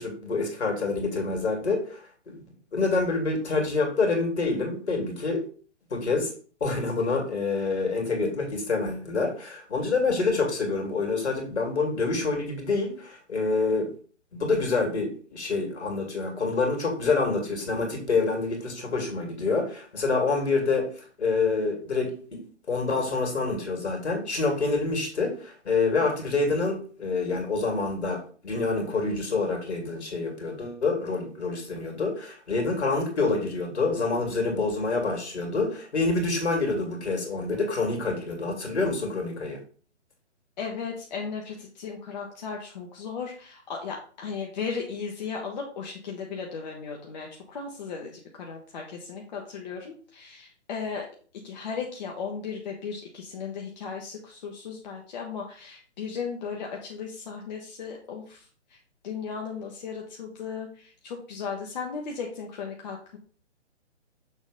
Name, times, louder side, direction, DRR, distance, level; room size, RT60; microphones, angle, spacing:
voice 1, 0.0-2.4 2.7-5.4 5.9-6.3 6.6-13.9 14.3-22.4 22.7-39.6, left 3 dB, 65° left, 2 dB, 2.4 m, -27 dB
voice 2, 40.6-51.1 51.4-58.8 59.0-63.2, left 5 dB, 35° left, 0 dB, 1.0 m, -36 dB
6.4 x 3.0 x 5.2 m, 0.42 s
figure-of-eight pair, 130°, 36 cm